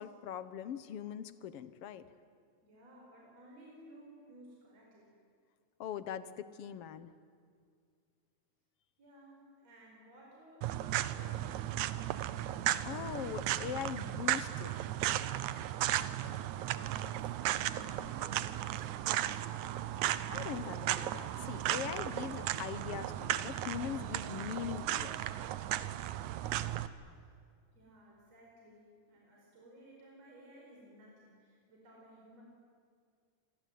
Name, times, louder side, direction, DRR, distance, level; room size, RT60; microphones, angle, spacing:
voice 1, 0.0-2.1 5.8-7.1 12.8-14.7 20.3-25.2, left 9 dB, 65° left, 14 dB, 1.7 m, -41 dB
voice 2, 2.6-5.1 9.0-11.7 16.7-19.4 27.0-27.3 27.7-32.4, right 1 dB, 60° right, -2 dB, 6.0 m, -57 dB
sound 1, 10.6-26.9, right 13 dB, 80° right, 2.2 m, -35 dB
27.5 x 23.5 x 9.3 m, 2.1 s
omnidirectional pair, 3.4 m